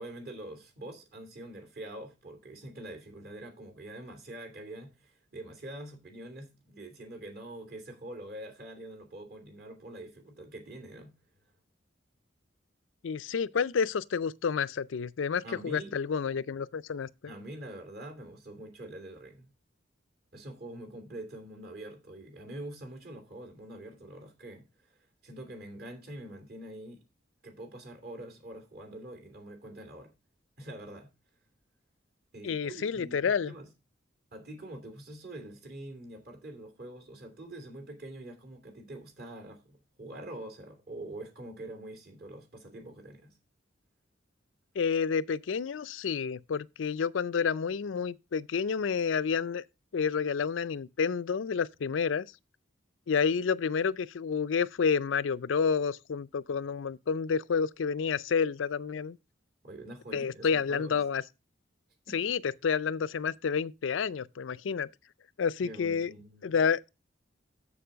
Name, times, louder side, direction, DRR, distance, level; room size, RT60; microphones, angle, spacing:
voice 1, 0.0-11.1 15.4-15.9 17.3-19.5 20.3-25.0 25.2-27.0 27.4-30.1 30.6-31.1 32.3-33.7 34.3-43.3 59.6-61.0 62.0-62.2 65.6-66.5, right 1 dB, 55° right, 2.9 m, -45 dB
voice 2, 13.0-17.1 32.4-33.5 44.8-49.6 49.9-52.3 53.1-59.2 60.1-61.2 62.1-64.9 65.4-66.1 66.4-66.9, left 6 dB, 85° left, 0.4 m, -29 dB
7.2 x 7.0 x 5.0 m
head